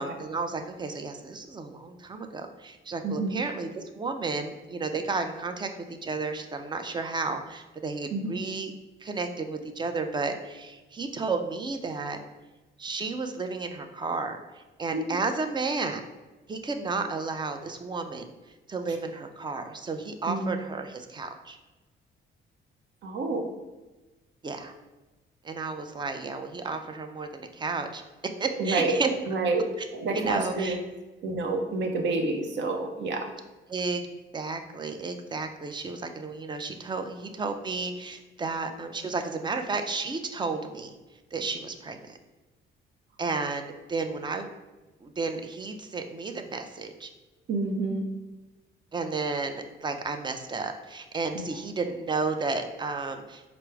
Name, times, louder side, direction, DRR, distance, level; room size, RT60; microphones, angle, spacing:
voice 1, 0.0-8.7 9.0-12.2 12.8-16.0 16.5-18.3 18.7-21.6 24.4-24.7 25.4-28.0 28.4-29.1 30.1-30.8 33.7-34.1 34.3-40.9 41.3-42.2 43.2-44.5 45.0-47.1 48.9-53.4, right 4 dB, 25° right, 6 dB, 0.4 m, -32 dB
voice 2, 3.0-3.4 8.1-8.3 14.9-15.2 20.3-20.5 23.0-23.5 28.6-29.0 29.3-29.6 29.9-30.8 31.2-33.3 47.5-48.0 51.3-51.5, right 3 dB, 65° right, 4 dB, 0.7 m, -28 dB
4.5 x 2.0 x 4.5 m, 1.1 s
cardioid pair, 90°, 20 cm